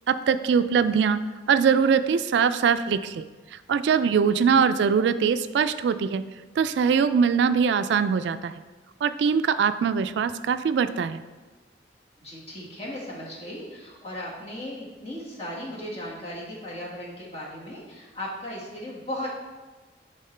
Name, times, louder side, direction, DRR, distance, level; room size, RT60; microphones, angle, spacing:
voice 1, 0.1-1.2 1.5-3.2 3.5-6.2 6.6-8.5 9.0-11.2, right 6 dB, 70° right, 12 dB, 0.3 m, -22 dB
voice 2, 4.3-4.7 12.2-19.3, left 1 dB, 35° left, -5 dB, 1.7 m, -37 dB
10.0 x 3.7 x 3.3 m, 1.3 s
head